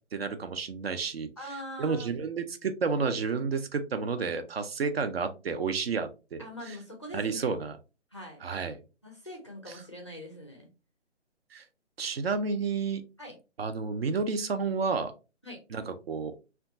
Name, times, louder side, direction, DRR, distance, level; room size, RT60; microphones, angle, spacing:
voice 1, 0.1-1.3 1.8-6.8 7.1-7.8 8.4-8.8 9.7-9.8 11.5-11.7 12.0-13.0 13.6-15.1 15.7-16.3, right 5 dB, 55° right, 8 dB, 0.5 m, -31 dB
voice 2, 1.4-2.1 6.4-7.5 8.1-8.4 9.0-10.7 13.2-13.4 15.4-15.6, left 1 dB, 25° left, 1 dB, 0.4 m, -43 dB
2.7 x 2.2 x 2.5 m, 0.30 s
figure-of-eight pair, 150°, 36 cm